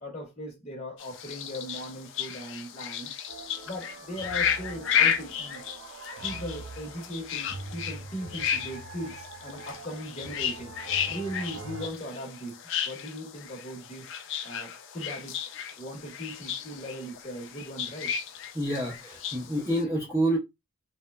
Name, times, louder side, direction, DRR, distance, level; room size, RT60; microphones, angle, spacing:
voice 1, 0.0-3.1 3.6-5.6 6.2-12.6 12.8-14.1 14.4-15.4 15.8-18.1, equal, 30° left, 0.7 m, -39 dB
sound 1, 1.0-19.8, left 8 dB, 55° left, 0.3 m, -33 dB
sound 2, 3.3-11.9, right 3 dB, 70° right, 0.5 m, -44 dB
voice 2, 18.5-20.4, right 1 dB, 10° right, 0.5 m, -28 dB
2.9 x 2.0 x 2.2 m
head